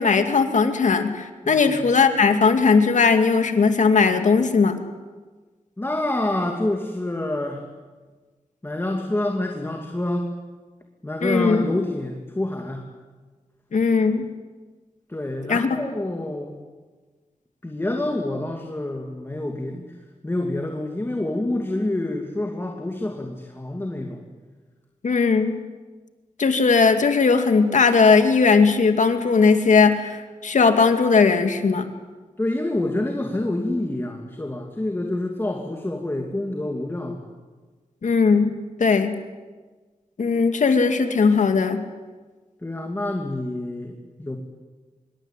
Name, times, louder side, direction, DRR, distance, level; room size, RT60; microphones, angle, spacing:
voice 1, 0.0-4.8 11.2-11.6 13.7-14.2 15.5-15.7 25.0-25.6 26.4-31.9 38.0-38.5 38.8-39.2 40.2-41.8, left 5 dB, 65° left, 7 dB, 2.4 m, -18 dB
voice 2, 1.4-1.9 5.8-7.6 8.6-10.3 11.0-12.9 15.1-16.5 17.6-19.9 20.2-24.2 32.4-37.3 42.6-44.4, left 1 dB, 15° left, 2 dB, 2.6 m, -27 dB
25.5 x 23.5 x 9.1 m, 1.3 s
wide cardioid pair, 115°, 13 cm